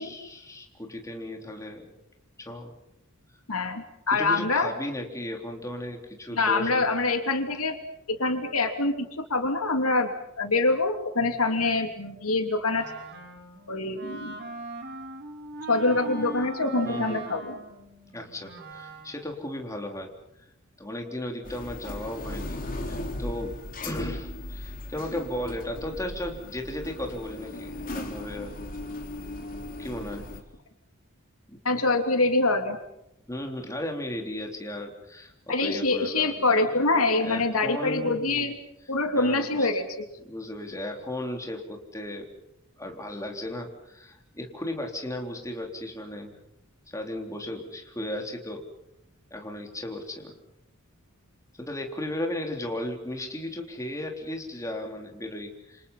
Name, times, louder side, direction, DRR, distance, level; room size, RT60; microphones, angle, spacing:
voice 1, 0.0-1.9 2.4-2.7 4.1-6.9 16.8-17.2 18.1-20.1 20.8-22.6 22.9-23.6 23.8-28.5 29.8-30.2 31.5-31.6 33.3-36.6 37.1-38.5 39.1-39.7 40.2-42.3 42.8-46.4 46.9-48.6 49.3-50.4 51.6-55.9, left 1 dB, 15° left, 2 dB, 3.6 m, -35 dB
voice 2, 3.5-4.7 6.4-7.8 8.1-9.0 9.3-10.1 10.4-12.9 13.7-14.4 15.7-17.6 31.6-32.8 35.5-38.5 38.9-40.0, left 3 dB, 80° left, 5 dB, 3.0 m, -25 dB
Wind instrument woodwind instrument, 12.7-19.3, right 2 dB, 50° right, 4.0 m, -40 dB
sound 1, 21.4-30.4, left 1 dB, 40° left, 3.7 m, -37 dB
28.5 x 27.5 x 5.7 m, 0.84 s
head